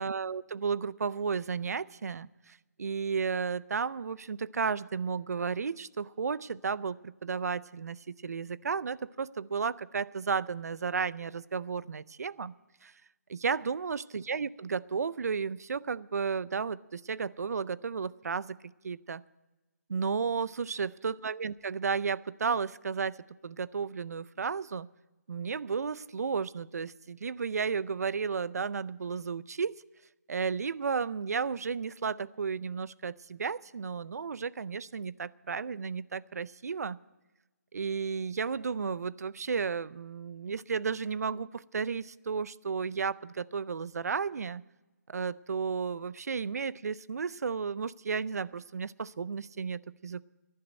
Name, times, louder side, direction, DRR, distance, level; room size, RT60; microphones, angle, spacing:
voice 1, 0.0-12.5 12.8-12.9 13.3-18.6 18.8-19.2 19.9-24.9 25.3-29.8 30.3-37.0 37.7-44.6 45.1-50.2, right 5 dB, 65° right, 21 dB, 0.5 m, -33 dB
11.0 x 10.5 x 8.8 m, 1.1 s
hypercardioid pair, 165°, 9 cm